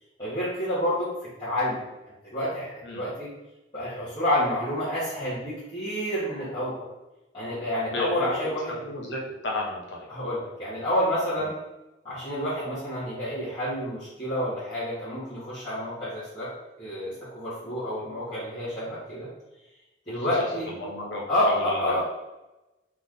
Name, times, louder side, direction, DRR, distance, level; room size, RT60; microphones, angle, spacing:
voice 1, 0.2-3.3 3.7-6.9 7.3-8.8 10.1-11.5 12.0-16.5 16.8-19.3 20.1-20.7 21.3-22.0, left 1 dB, 25° left, -13 dB, 1.5 m, -29 dB
voice 2, 7.9-8.3 8.7-10.0 20.8-22.0, left 1 dB, 70° left, -3 dB, 1.3 m, -33 dB
4.1 x 3.5 x 3.7 m, 1.0 s
head